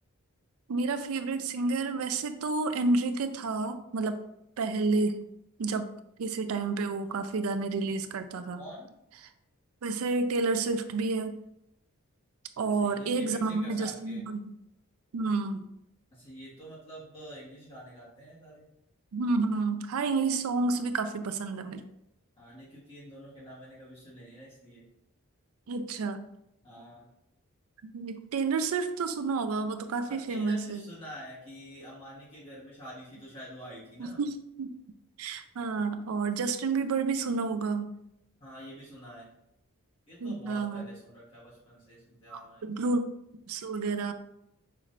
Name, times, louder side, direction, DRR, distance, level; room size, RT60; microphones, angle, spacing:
voice 1, 0.7-4.2 4.6-5.2 5.6-5.9 6.2-8.6 9.8-11.4 12.6-14.5 15.1-15.7 19.1-21.8 25.7-26.2 27.8-30.8 34.0-34.7 35.2-37.9 40.2-40.8 42.3-43.1 43.5-44.1, right 3 dB, 75° right, 9 dB, 0.4 m, -30 dB
voice 2, 8.6-8.9 12.8-14.2 16.1-18.6 22.4-24.9 26.6-27.1 30.1-34.2 38.4-39.3 40.1-42.8, equal, 25° left, -9 dB, 1.5 m, -47 dB
5.7 x 3.0 x 2.5 m, 0.81 s
head